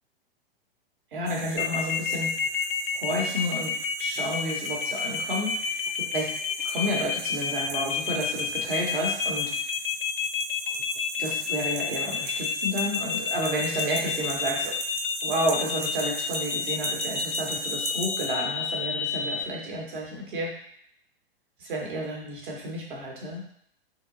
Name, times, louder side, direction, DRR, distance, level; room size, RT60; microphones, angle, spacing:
voice 1, 1.1-2.6 2.9-6.3 6.6-9.5 11.2-14.7 15.2-20.5 21.7-23.4, equal, 60° right, -1 dB, 1.2 m, -31 dB
sound 1, 1.3-18.3, right 4 dB, 20° right, 0.5 m, -38 dB
sound 2, 1.6-19.4, left 7 dB, 65° left, 0.5 m, -29 dB
3.8 x 2.9 x 3.9 m, 0.67 s
figure-of-eight pair, 105°, 30 cm